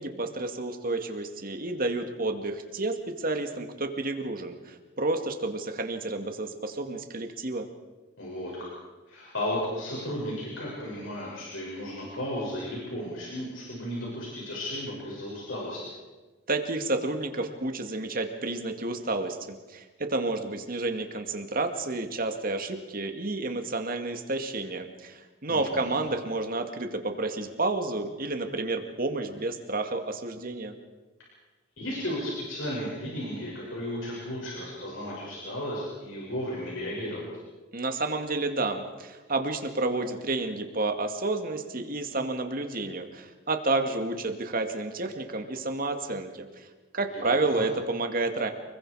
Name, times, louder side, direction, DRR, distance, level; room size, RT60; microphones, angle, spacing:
voice 1, 0.0-7.7 16.5-30.8 37.7-46.7 46.9-48.5, right 2 dB, 45° right, 6 dB, 2.3 m, -30 dB
voice 2, 8.2-8.7 9.1-15.8 25.5-26.0 31.8-37.3 47.1-47.6, left 1 dB, 85° left, -5 dB, 7.3 m, -34 dB
29.5 x 22.0 x 5.0 m, 1.3 s
head